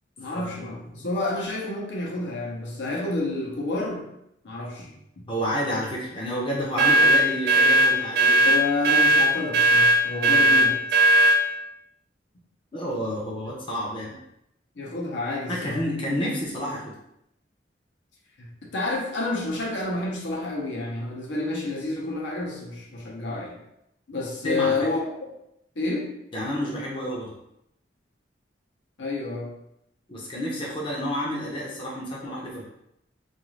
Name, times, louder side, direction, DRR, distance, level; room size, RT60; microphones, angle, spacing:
voice 1, 0.2-4.1 4.4-5.2 8.4-10.8 14.8-15.8 18.4-23.6 24.1-25.1 25.8-26.1 29.0-29.5, left 2 dB, 70° left, -3 dB, 0.7 m, -29 dB
voice 2, 5.3-8.5 12.7-14.2 15.5-16.8 24.4-24.7 26.3-27.3 30.1-32.7, equal, 30° left, -5 dB, 0.6 m, -29 dB
sound 1, 6.8-11.4, right 1 dB, 60° right, 0.4 m, -18 dB
2.5 x 2.4 x 3.1 m, 0.78 s
head